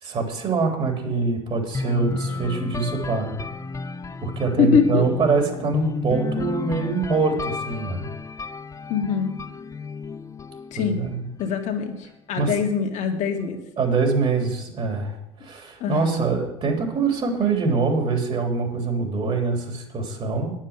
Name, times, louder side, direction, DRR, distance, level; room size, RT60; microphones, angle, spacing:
voice 1, 0.0-3.4 4.2-8.1 10.7-11.2 12.4-12.5 13.8-20.5, right 4 dB, 40° right, 2 dB, 3.3 m, -24 dB
sound 1, 1.7-11.6, left 4 dB, 20° left, 0.7 m, -32 dB
voice 2, 4.6-5.1 8.9-9.4 10.7-11.0 11.4-13.6 15.8-16.2, left 6 dB, 55° left, 4 dB, 1.9 m, -23 dB
9.8 x 7.5 x 7.4 m, 0.86 s
hypercardioid pair, 80°, 15 cm